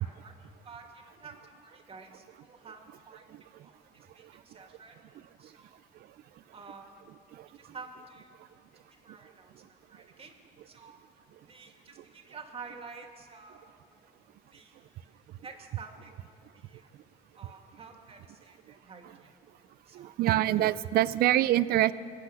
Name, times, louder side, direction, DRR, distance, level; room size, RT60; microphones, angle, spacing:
voice 1, 0.0-3.2 3.6-6.1 6.5-7.0 7.5-10.4 10.7-11.0 11.4-14.0 14.5-16.9 17.3-19.3 19.9-20.4, right 4 dB, 35° right, 3 dB, 2.2 m, -50 dB
voice 2, 19.9-21.9, right 14 dB, 65° right, 17 dB, 0.5 m, -25 dB
25.0 x 8.4 x 6.5 m, 2.2 s
cardioid pair, 110°, 17 cm